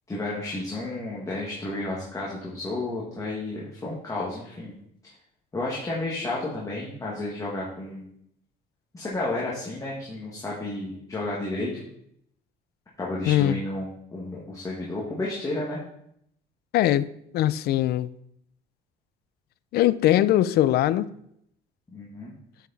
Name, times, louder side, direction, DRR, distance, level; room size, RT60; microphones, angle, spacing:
voice 1, 0.1-4.8 5.5-8.1 8.9-11.8 13.0-15.8 21.9-22.3, left 2 dB, 20° left, 1.8 m, -32 dB
voice 2, 13.3-13.6 16.7-17.1 17.3-18.1 19.7-21.1, left 13 dB, 70° left, 0.4 m, -21 dB
7.0 x 6.0 x 4.1 m
cardioid pair, 110°, 17 cm